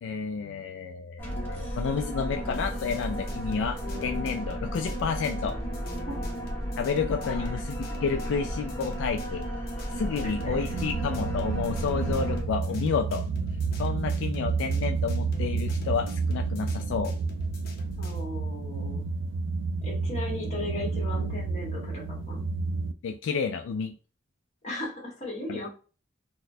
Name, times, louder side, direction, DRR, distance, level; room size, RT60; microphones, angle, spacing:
voice 1, 0.0-5.6 6.8-9.4 9.9-13.2 13.8-17.1 23.0-23.9 25.5-25.7, left 5 dB, 75° left, 6 dB, 0.3 m, -30 dB
sound 1, 1.2-12.4, equal, 10° left, 1.3 m, -34 dB
sound 2, 2.5-18.3, equal, 55° left, 0.7 m, -45 dB
voice 2, 10.2-10.6 18.0-19.0 19.8-22.5 24.6-25.7, left 2 dB, 35° left, -2 dB, 1.3 m, -37 dB
sound 3, 10.3-22.9, right 4 dB, 85° right, 0.3 m, -30 dB
4.0 x 2.1 x 2.7 m, 0.37 s
head